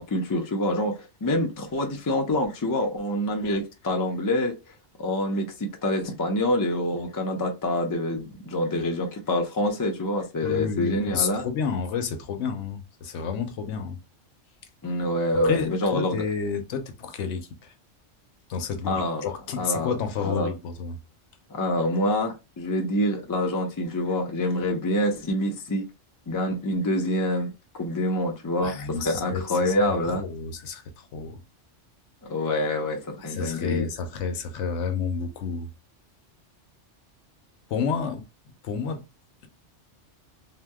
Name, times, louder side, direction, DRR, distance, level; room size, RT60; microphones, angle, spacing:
voice 1, 0.0-4.5 5.0-11.5 14.8-16.2 18.9-19.2 19.6-20.0 20.2-20.5 21.5-25.8 26.3-30.2 32.2-33.9, left 1 dB, 30° left, 0.3 m, -26 dB
voice 2, 10.4-14.0 15.4-17.7 18.5-21.0 28.6-29.7 30.0-31.4 33.2-35.7 37.7-38.2 38.6-39.0, left 6 dB, 75° left, 0.9 m, -30 dB
2.8 x 2.1 x 3.5 m
omnidirectional pair, 1.3 m